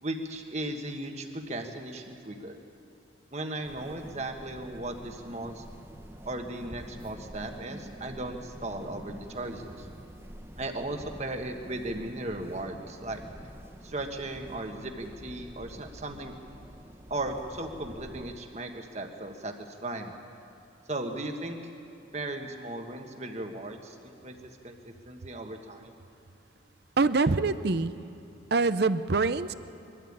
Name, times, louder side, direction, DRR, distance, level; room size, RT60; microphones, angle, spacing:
voice 1, 0.0-2.6 3.3-5.6 6.2-9.9 10.6-13.2 13.8-16.3 17.1-20.1 20.9-21.6 22.1-24.4 24.6-25.9, right 2 dB, 35° right, 4 dB, 1.5 m, -36 dB
sound 1, 3.6-18.4, right 1 dB, 15° right, 0.7 m, -47 dB
voice 2, 27.0-28.0 28.5-29.5, right 3 dB, 55° right, 13 dB, 0.6 m, -25 dB
22.0 x 13.5 x 8.7 m, 3.0 s
head